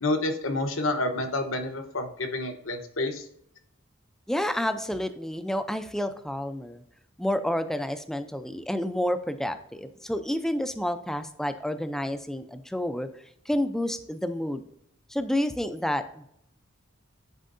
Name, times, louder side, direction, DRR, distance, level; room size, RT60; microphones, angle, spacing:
voice 1, 0.0-3.3, left 2 dB, 75° left, 5 dB, 1.1 m, -29 dB
voice 2, 4.3-6.8 7.2-13.1 13.5-14.6 15.1-16.3, left 1 dB, ahead, 10 dB, 0.4 m, -29 dB
10.0 x 4.5 x 2.6 m, 0.74 s
head